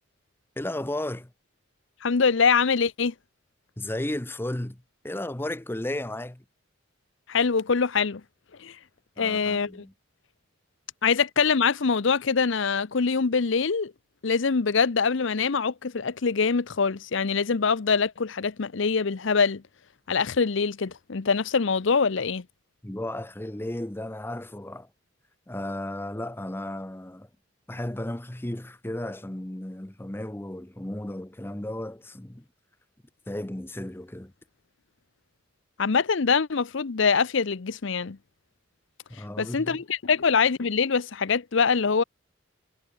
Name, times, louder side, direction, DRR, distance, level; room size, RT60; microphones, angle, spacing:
voice 1, 0.6-1.3 3.8-6.4 9.2-9.9 22.8-24.9 25.5-27.3 27.7-32.4 33.3-34.3 39.1-39.8, left 1 dB, 10° left, 0.7 m, -34 dB
voice 2, 2.0-3.1 7.3-8.2 8.6-8.8 9.2-9.8 11.0-13.9 14.2-19.6 20.1-22.4 35.8-38.2 39.1-42.0, left 5 dB, 65° left, 0.7 m, -24 dB
head